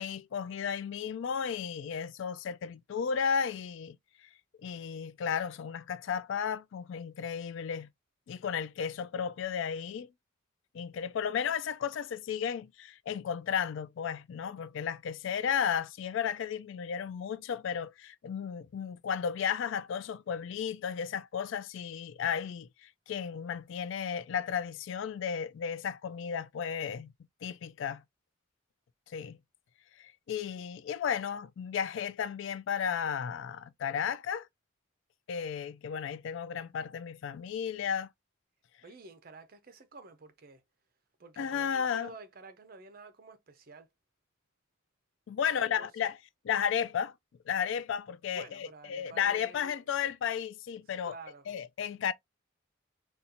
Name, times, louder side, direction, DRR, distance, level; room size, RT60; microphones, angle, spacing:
voice 1, 0.0-4.0 4.6-7.9 8.3-10.1 10.7-27.1 27.4-28.0 29.1-29.4 30.0-34.5 35.3-38.1 41.4-42.1 45.3-46.2 46.4-47.1 47.5-51.2 51.5-52.1, left 7 dB, 65° left, 0.3 m, -34 dB
voice 2, 38.8-40.6 41.2-43.9 45.4-46.1 48.3-50.0 51.0-51.5, right 3 dB, 45° right, 0.6 m, -50 dB
4.1 x 2.3 x 2.6 m
head